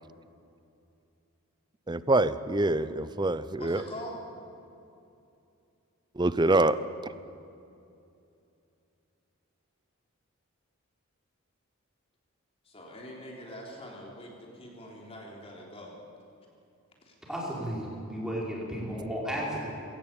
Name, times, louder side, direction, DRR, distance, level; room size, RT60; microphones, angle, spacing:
voice 1, 1.9-3.8 6.2-6.8, right 2 dB, 20° right, 15 dB, 0.6 m, -25 dB
voice 2, 3.6-4.2 12.7-15.9 17.0-17.1, equal, 25° left, -1 dB, 3.7 m, -43 dB
voice 3, 17.3-19.6, equal, 5° right, -4 dB, 5.1 m, -33 dB
21.0 x 17.5 x 8.9 m, 2.6 s
head